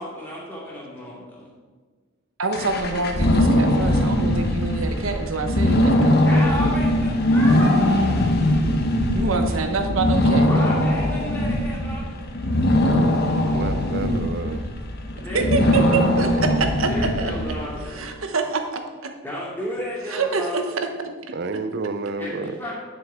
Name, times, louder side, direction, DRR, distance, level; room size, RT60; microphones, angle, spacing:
voice 1, 0.0-1.5 6.0-7.8 8.0-8.2 10.5-12.3 15.1-16.4 16.7-18.1 19.2-20.9 22.2-22.7, equal, 10° left, -6 dB, 2.6 m, -33 dB
voice 2, 2.4-6.2 9.1-10.5 15.3-16.9 17.2-17.3 18.0-18.6 19.0-19.1 20.1-20.9 21.5-21.6, right 4 dB, 80° right, 5 dB, 1.0 m, -26 dB
sound 1, 2.5-17.9, left 1 dB, 50° left, 1.0 m, -21 dB
voice 3, 13.5-14.6 21.3-22.5, right 3 dB, 55° right, 11 dB, 0.5 m, -30 dB
9.4 x 6.5 x 4.5 m, 1.5 s
head